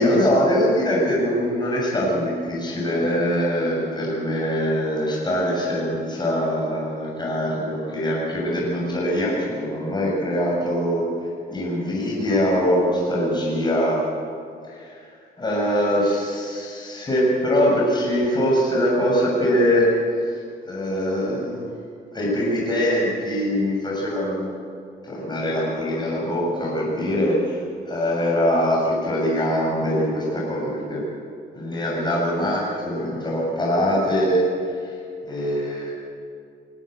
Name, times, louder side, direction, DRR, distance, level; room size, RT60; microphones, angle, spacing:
voice 1, 0.0-11.1 11.5-14.0 14.7-15.0 15.4-19.9 20.6-21.7 22.1-24.5 25.0-27.6 27.8-31.0 31.5-34.4 34.8-34.9 35.2-35.9, equal, 20° left, -4 dB, 7.6 m, -22 dB
22.0 x 17.0 x 8.3 m, 2.4 s
cardioid pair, 90°, 20 cm